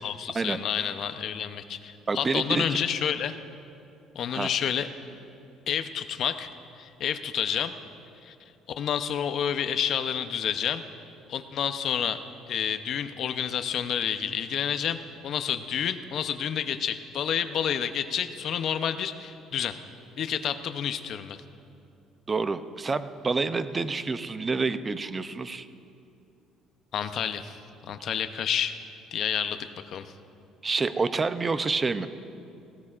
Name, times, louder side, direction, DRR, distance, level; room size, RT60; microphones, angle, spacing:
voice 1, 0.0-3.4 4.1-4.9 5.7-6.5 6.8-7.7 8.2-8.3 8.8-10.8 11.3-12.2 12.5-19.8 20.2-21.4 26.9-27.6 27.9-28.8 29.1-29.6 29.9-30.1, left 8 dB, 55° left, 10 dB, 0.6 m, -29 dB
voice 2, 2.1-2.7 4.3-4.5 22.3-25.7 30.6-32.1, right 4 dB, 25° right, 12 dB, 0.5 m, -28 dB
18.0 x 16.5 x 2.5 m, 2.6 s
cardioid pair, 130°, 0 cm